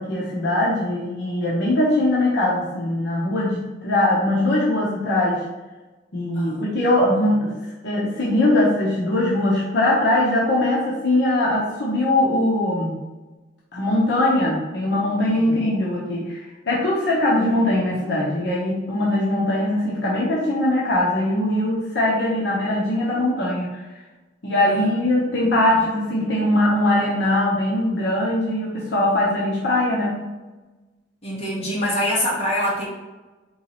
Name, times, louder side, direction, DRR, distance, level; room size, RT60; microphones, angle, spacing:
voice 1, 0.0-5.4 6.1-7.6 7.8-12.9 13.7-16.4 16.7-23.8 24.4-30.3, left 1 dB, 65° left, -6 dB, 0.9 m, -21 dB
voice 2, 6.3-6.8 15.3-15.6 25.4-25.8 31.2-32.9, equal, 35° left, -6 dB, 1.4 m, -25 dB
4.4 x 3.1 x 2.9 m, 1.2 s
head